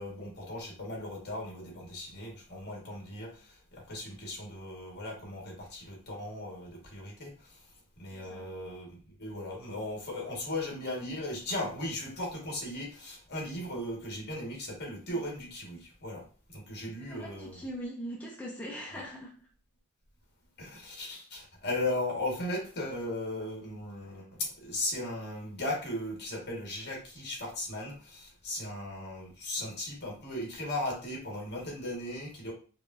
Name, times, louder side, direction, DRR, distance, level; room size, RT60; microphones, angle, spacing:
voice 1, 0.0-8.9 9.2-16.2 16.5-17.6 18.9-19.0 20.6-32.5, left 1 dB, 50° left, -1 dB, 1.6 m, -37 dB
voice 2, 8.1-8.5 15.1-15.2 17.0-19.5, equal, 5° left, -4 dB, 0.6 m, -41 dB
4.9 x 2.7 x 2.6 m, 0.38 s
head